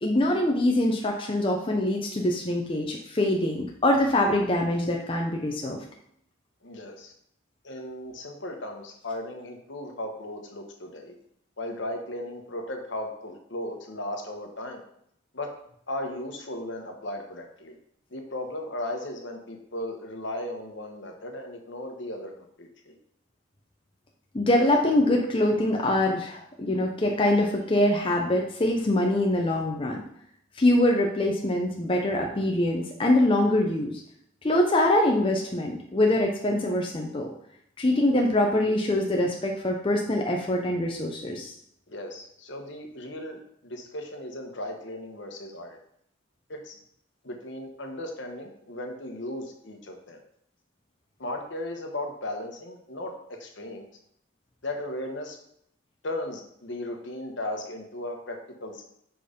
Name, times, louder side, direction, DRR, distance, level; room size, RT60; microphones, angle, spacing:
voice 1, 0.0-5.8 24.3-30.0 30.6-33.9 34.4-37.3 37.8-41.5, left 1 dB, 25° left, 1 dB, 0.6 m, -24 dB
voice 2, 6.6-7.1 7.6-11.1 11.6-14.8 15.3-15.5 15.9-17.8 18.1-22.3 22.6-22.9 41.9-45.8 46.5-46.7 47.2-50.2 51.2-53.1 53.4-53.9 54.6-55.4 56.0-58.8, left 1 dB, 60° left, 3 dB, 1.1 m, -36 dB
5.1 x 4.6 x 5.1 m, 0.70 s
head